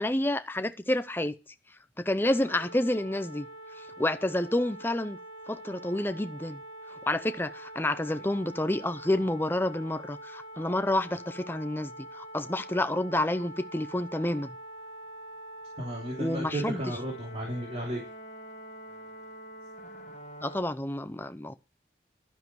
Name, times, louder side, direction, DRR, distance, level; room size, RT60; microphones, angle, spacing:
voice 1, 0.0-1.3 2.0-3.5 4.0-5.2 5.5-6.6 7.1-14.5 16.2-16.8 20.4-21.5, left 1 dB, 10° left, 0.7 m, -29 dB
sound 1, 2.2-20.6, right 1 dB, 40° left, 1.7 m, -45 dB
voice 2, 15.8-18.0, equal, 35° right, 3.2 m, -34 dB
12.0 x 10.5 x 4.7 m
head